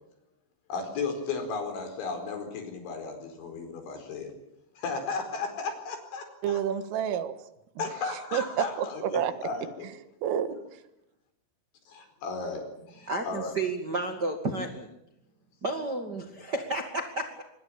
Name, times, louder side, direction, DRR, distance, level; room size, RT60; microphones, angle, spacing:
voice 1, 0.7-4.3 4.8-6.6 7.8-9.9 11.9-13.6, left 4 dB, 65° left, 6.8 m, -35 dB
voice 2, 6.4-7.4 7.8-7.9 8.3-9.3 10.2-10.6, right 9 dB, 80° right, 4.1 m, -29 dB
voice 3, 13.1-14.9 15.6-17.4, right 2 dB, 40° right, 1.4 m, -32 dB
25.5 x 21.0 x 8.8 m
omnidirectional pair, 5.8 m